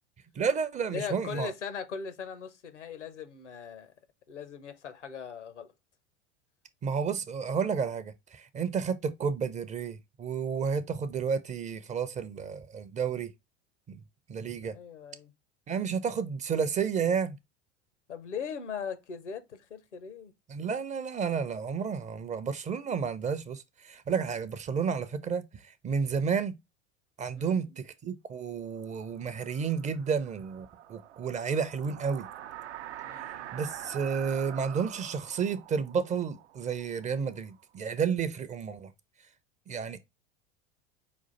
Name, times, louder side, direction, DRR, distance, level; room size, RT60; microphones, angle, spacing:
voice 1, 0.4-1.5 6.8-13.3 13.9-14.0 14.3-14.8 15.7-17.4 20.5-26.6 27.2-32.3 33.5-38.9 39.7-40.2, right 6 dB, 20° right, 0.4 m, -31 dB
voice 2, 0.9-3.9 4.3-5.7 14.6-15.3 18.1-20.3 27.3-27.7 33.0-33.6, left 6 dB, 85° left, 0.8 m, -40 dB
sound 1, 28.8-37.6, right 11 dB, 75° right, 0.5 m, -45 dB
5.3 x 2.5 x 3.8 m
figure-of-eight pair, 80°, 34 cm